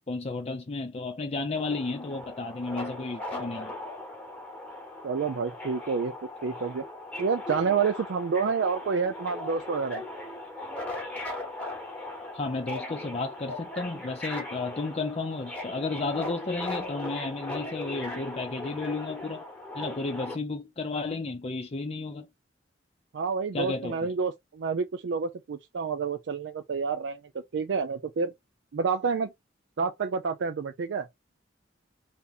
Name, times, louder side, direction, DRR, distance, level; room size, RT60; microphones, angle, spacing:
voice 1, 0.1-3.7 12.3-19.5 19.7-22.3 23.5-24.1, left 3 dB, 35° left, 0.5 m, -33 dB
Subway metro underground, 1.5-20.3, left 2 dB, 10° left, 1.1 m, -38 dB
voice 2, 5.0-6.1 6.4-6.8 7.2-10.0 23.1-27.2 27.5-28.3 28.7-29.3 29.8-31.1, right 5 dB, 65° right, 0.4 m, -28 dB
3.5 x 2.8 x 4.0 m
head